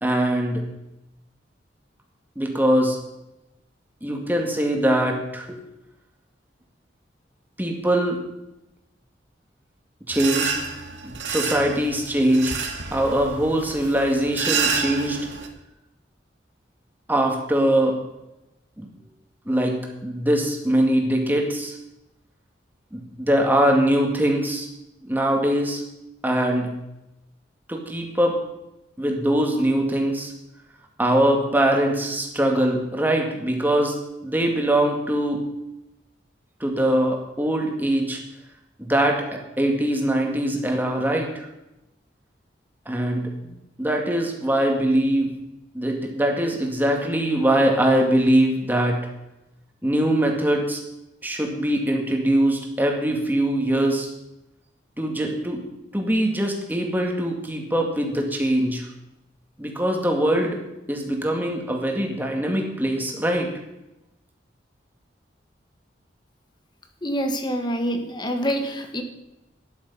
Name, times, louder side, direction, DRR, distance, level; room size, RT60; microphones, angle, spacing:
voice 1, 0.0-0.6 2.4-3.0 4.0-5.6 7.6-8.2 10.1-10.6 11.0-12.6 12.9-15.2 17.1-18.0 18.8-18.9 19.5-21.8 22.9-24.7 25.0-25.8 26.2-26.7 27.7-28.4 29.0-30.3 31.0-34.0 34.2-35.4 36.6-38.2 38.8-41.5 42.9-45.3 45.7-49.0 49.8-50.8 51.2-54.1 55.0-55.6 55.9-58.9 59.6-60.6 60.9-63.5, right 1 dB, 10° right, 1 dB, 2.1 m, -22 dB
sound 1, 10.1-15.5, right 5 dB, 85° right, 1.9 m, -29 dB
voice 2, 67.0-69.0, equal, 25° left, 6 dB, 1.5 m, -26 dB
12.5 x 10.5 x 5.6 m, 0.93 s
head